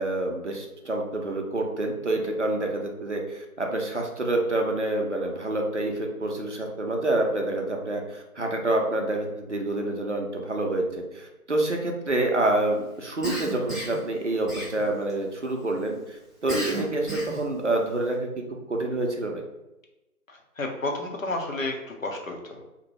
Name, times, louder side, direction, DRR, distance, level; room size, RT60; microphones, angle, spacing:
voice 1, 0.0-19.4, right 2 dB, 55° right, 2 dB, 0.5 m, -27 dB
Cough, 13.2-14.0 14.5-15.1 16.5-17.5, right 1 dB, ahead, 0.5 m, -32 dB
voice 2, 20.3-22.7, left 2 dB, 65° left, 2 dB, 0.6 m, -32 dB
2.6 x 2.1 x 3.0 m, 0.98 s
figure-of-eight pair, 165°, 44 cm